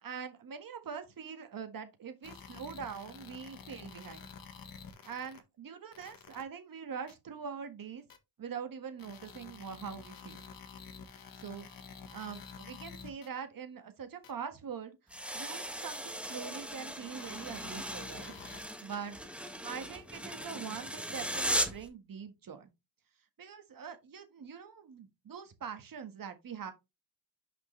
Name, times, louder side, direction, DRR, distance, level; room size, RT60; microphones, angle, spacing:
voice 1, 0.0-4.3 5.0-8.0 8.4-10.4 11.4-11.7 12.1-15.0 15.3-18.3 18.8-22.7 23.4-26.7, right 6 dB, 45° right, 1.6 m, -43 dB
sound 1, 2.2-5.4 5.9-6.4 7.1-7.2 8.1-8.2 9.0-13.3 14.2-14.3 15.3-15.4 16.3-16.4 17.2-18.6, left 6 dB, 45° left, 1.4 m, -49 dB
sound 2, 15.1-21.9, equal, ahead, 1.3 m, -38 dB
5.9 x 5.3 x 3.2 m
cardioid pair, 100°, 48 cm